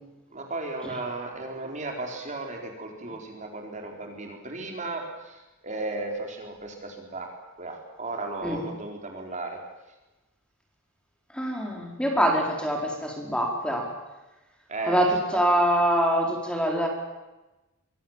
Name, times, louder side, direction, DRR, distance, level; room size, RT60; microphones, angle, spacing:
voice 1, 0.3-5.4 5.6-7.3 7.6-9.6 14.7-15.1, right 2 dB, 35° right, 2 dB, 4.2 m, -35 dB
voice 2, 11.3-13.9 14.9-16.9, equal, 5° left, 1 dB, 4.7 m, -24 dB
26.0 x 24.0 x 7.5 m, 1.1 s
head